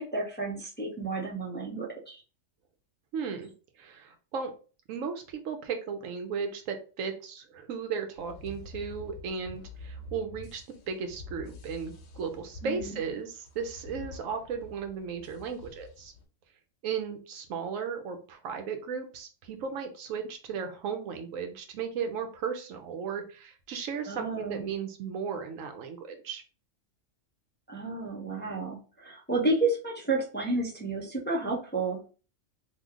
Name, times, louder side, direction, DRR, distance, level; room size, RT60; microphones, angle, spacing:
voice 1, 0.0-2.2 12.6-13.0 24.1-24.7 27.7-32.0, right 2 dB, 10° left, -4 dB, 0.6 m, -31 dB
voice 2, 3.1-3.5 3.8-4.5 4.9-16.1 16.8-26.4, right 6 dB, 80° right, 6 dB, 1.1 m, -35 dB
sound 1, 8.2-16.2, left 2 dB, 70° left, 1.0 m, -47 dB
3.1 x 2.2 x 3.5 m, 0.36 s
omnidirectional pair, 1.3 m